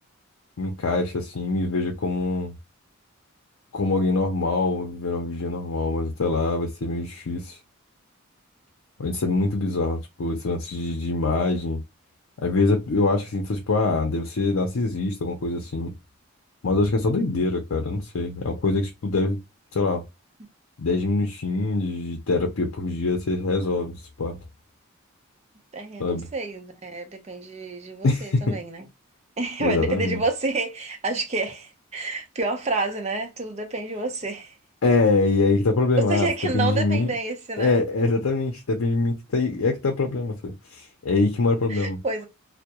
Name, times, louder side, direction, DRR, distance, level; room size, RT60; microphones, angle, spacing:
voice 1, 0.6-2.5 3.7-7.6 9.0-11.8 12.4-15.9 16.6-19.4 19.7-20.0 20.8-24.4 26.0-26.3 28.0-28.5 29.6-30.2 34.8-36.3 36.5-37.1 37.6-42.0, left 3 dB, 70° left, 0.6 m, -24 dB
voice 2, 25.7-28.9 29.4-34.6 36.0-37.7 41.7-42.3, right 3 dB, 30° right, 0.6 m, -29 dB
2.2 x 2.1 x 2.8 m
head